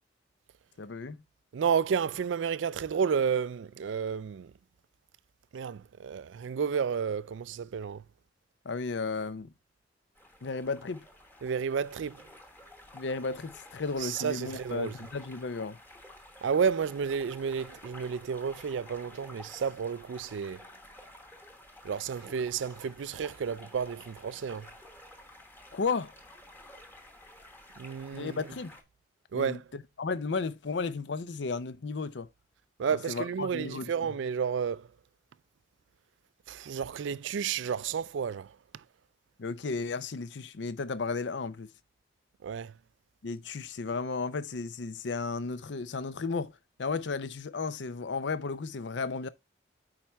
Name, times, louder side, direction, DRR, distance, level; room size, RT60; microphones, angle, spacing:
voice 1, 0.8-1.2 8.6-9.5 10.4-11.1 12.9-15.8 25.7-26.1 28.1-28.8 29.3-32.3 32.9-34.1 39.4-41.7 43.2-46.5 46.8-49.3, left 4 dB, 70° left, 0.6 m, -34 dB
voice 2, 1.5-4.5 5.5-8.0 11.4-12.2 14.0-14.9 16.4-20.6 21.8-24.7 27.8-28.4 29.3-29.6 32.8-34.9 36.5-38.5 42.4-42.7, right 6 dB, 80° right, 0.4 m, -31 dB
sound 1, 10.2-28.8, left 1 dB, 10° left, 1.0 m, -52 dB
8.9 x 4.4 x 3.4 m
head